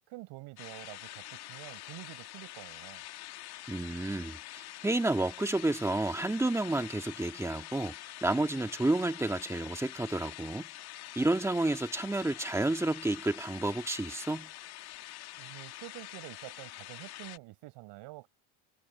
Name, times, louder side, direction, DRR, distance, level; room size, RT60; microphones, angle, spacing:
voice 1, 0.1-3.0 15.4-18.3, right 21 dB, 65° right, 7.3 m, -48 dB
sound 1, 0.6-17.4, left 15 dB, 50° left, 2.4 m, -46 dB
voice 2, 3.7-7.9 8.2-10.7 11.1-14.5, right 2 dB, 5° right, 1.7 m, -30 dB
supercardioid pair, 125°, 47 cm